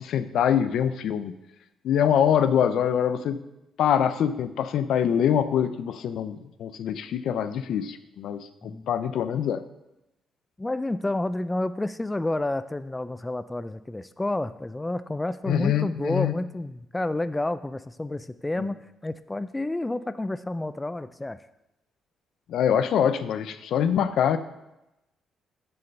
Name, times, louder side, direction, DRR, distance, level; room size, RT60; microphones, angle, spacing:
voice 1, 0.0-1.4 1.8-3.4 3.8-9.6 15.5-16.3 18.6-18.7 22.5-24.4, left 9 dB, 75° left, 12 dB, 0.5 m, -24 dB
voice 2, 10.6-21.4, left 2 dB, 15° left, 13 dB, 0.3 m, -30 dB
7.0 x 6.6 x 5.3 m, 0.92 s
cardioid pair, 90°, 0 cm